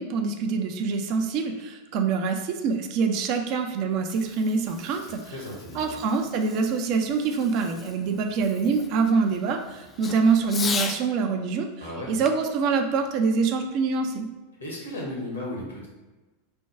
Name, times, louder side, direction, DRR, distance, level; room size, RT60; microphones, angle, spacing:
voice 1, 0.0-5.2 5.8-11.7 12.1-14.3, right 5 dB, 45° right, 5 dB, 0.4 m, -25 dB
Fireworks, 3.8-11.1 12.2-13.9, left 5 dB, 20° left, 0.3 m, -38 dB
voice 2, 4.6-6.0 11.8-12.1 14.6-15.9, left 1 dB, 75° left, -2 dB, 1.1 m, -36 dB
3.4 x 2.2 x 4.3 m, 1.2 s
figure-of-eight pair, 85°, 0 cm